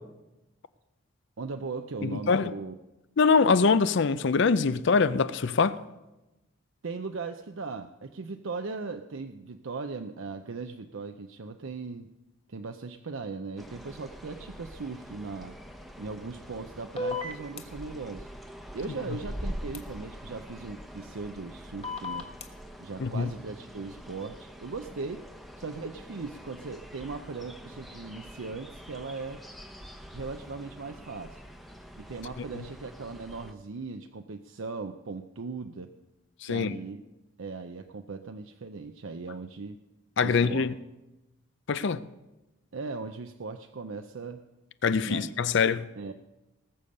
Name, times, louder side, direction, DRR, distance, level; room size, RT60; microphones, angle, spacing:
voice 1, 1.4-2.8 6.8-12.1 12.5-15.6 16.0-18.3 18.7-22.3 22.8-25.3 25.6-29.4 30.1-31.4 32.0-35.9 36.4-37.0 37.4-39.8 40.2-40.7 42.7-44.4 45.0-45.3 46.0-46.1, right 4 dB, 70° right, 0.6 m, -38 dB
voice 2, 2.0-2.5 3.2-5.8 23.0-23.3 36.4-36.8 40.2-40.7 41.7-42.0 44.8-45.9, left 5 dB, 55° left, 0.5 m, -24 dB
sound 1, 13.6-33.5, equal, ahead, 0.8 m, -45 dB
sound 2, 17.0-17.6 19.7-19.8 21.8-22.4, left 3 dB, 30° left, 1.2 m, -33 dB
19.5 x 7.0 x 6.5 m
head